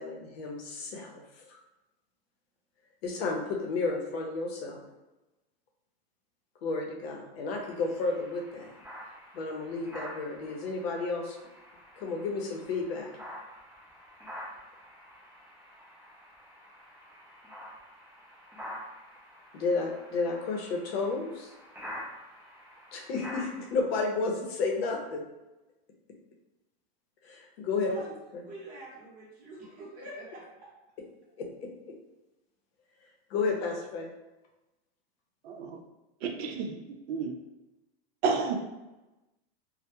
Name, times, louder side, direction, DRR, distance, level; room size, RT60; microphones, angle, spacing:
voice 1, 0.0-1.5 3.0-4.8 6.6-8.7 9.3-11.4 12.0-13.1 19.5-21.5 22.9-25.2 27.2-27.9 28.3-28.4 31.4-31.7 33.3-34.1, left 3 dB, 70° left, 0 dB, 0.7 m, -32 dB
sound 1, 7.5-23.7, equal, 5° right, 0.4 m, -47 dB
voice 2, 28.4-30.7, right 1 dB, 25° right, -5 dB, 0.8 m, -46 dB
voice 3, 35.4-35.8 36.2-36.8 37.1-37.3 38.2-38.6, right 5 dB, 75° right, 4 dB, 0.5 m, -30 dB
2.1 x 2.1 x 2.8 m, 1.0 s
supercardioid pair, 155°, 31 cm